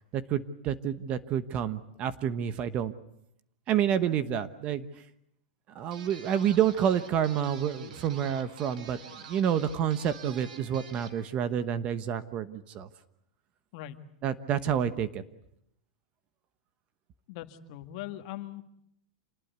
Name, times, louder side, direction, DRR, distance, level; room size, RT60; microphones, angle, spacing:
voice 1, 0.1-2.9 3.7-4.9 5.7-9.0 9.3-12.9 14.2-15.2, right 9 dB, 30° right, 13 dB, 1.1 m, -28 dB
sound 1, 5.9-11.2, right 5 dB, 80° right, 4.6 m, -48 dB
voice 2, 17.3-18.6, left 13 dB, 50° left, 8 dB, 1.9 m, -40 dB
27.5 x 20.0 x 8.2 m, 0.76 s
supercardioid pair, 160°, 4 cm